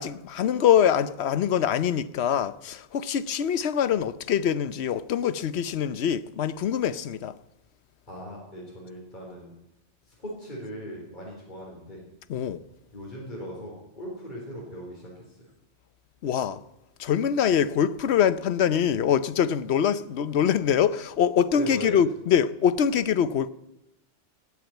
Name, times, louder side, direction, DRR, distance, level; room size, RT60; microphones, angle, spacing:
voice 1, 0.0-7.3 12.3-12.6 16.2-16.6 17.0-23.5, left 8 dB, 65° left, 1.0 m, -24 dB
voice 2, 8.1-9.5 10.1-12.0 12.9-15.5 21.6-22.0, equal, 40° left, 4.2 m, -39 dB
17.5 x 8.6 x 9.1 m
omnidirectional pair, 1.3 m